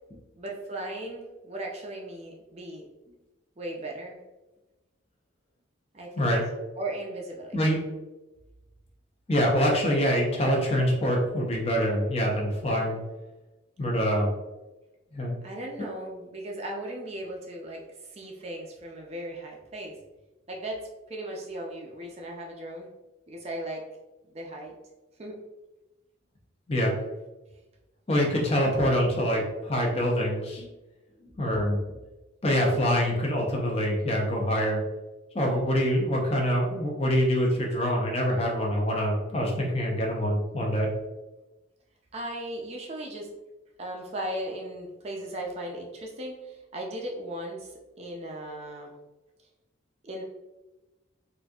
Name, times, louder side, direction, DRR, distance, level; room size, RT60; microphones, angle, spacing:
voice 1, 0.4-2.9 3.6-4.2 5.9-6.3 6.8-7.6 15.4-20.0 20.5-22.9 23.3-23.9 24.3-24.8 25.2-25.4 36.7-36.8 42.1-43.3 43.8-48.9 50.0-50.2, right 1 dB, 30° right, 0 dB, 0.4 m, -37 dB
voice 2, 9.3-13.0 13.8-14.3 15.1-15.3 15.8-15.9 26.7-26.9 28.1-30.7 31.4-31.8 32.4-34.8 35.3-40.9, equal, 30° left, -1 dB, 0.7 m, -25 dB
4.1 x 2.5 x 2.3 m, 1.1 s
head